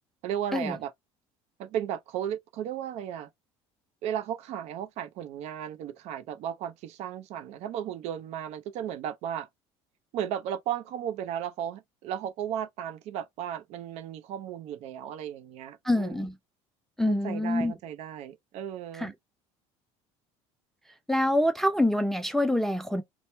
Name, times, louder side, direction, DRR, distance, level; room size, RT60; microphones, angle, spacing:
voice 1, 0.2-0.9 1.6-3.3 4.0-9.5 10.1-16.3 17.1-19.1, right 10 dB, 60° right, 0.5 m, -35 dB
voice 2, 15.9-16.3 17.0-17.7 19.0-19.1 21.1-23.0, left 1 dB, ahead, 0.3 m, -25 dB
2.9 x 2.1 x 3.1 m
cardioid pair, 140°, 13 cm